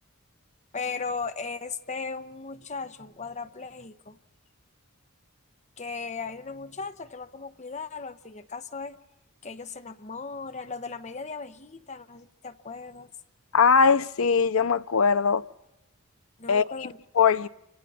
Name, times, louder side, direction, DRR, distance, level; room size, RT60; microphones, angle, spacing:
voice 1, 0.7-4.2 5.8-9.0 9.4-13.1 16.4-17.0, left 4 dB, 35° left, 0.9 m, -37 dB
voice 2, 13.5-15.4 16.5-16.9 17.2-17.5, left 5 dB, 80° left, 0.7 m, -21 dB
29.0 x 26.0 x 4.3 m
head